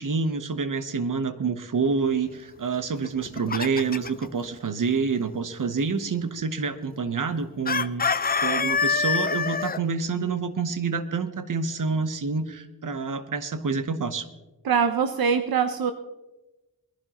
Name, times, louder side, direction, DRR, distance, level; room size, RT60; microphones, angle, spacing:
voice 1, 0.0-8.0 8.4-14.3, right 5 dB, 60° right, 11 dB, 1.0 m, -27 dB
Chicken rooster, 3.0-4.3 7.7-9.8, left 5 dB, 25° left, 0.5 m, -25 dB
voice 2, 14.6-15.9, right 6 dB, 85° right, 8 dB, 0.7 m, -23 dB
21.0 x 11.0 x 3.0 m, 1.1 s
cardioid pair, 45°, 35 cm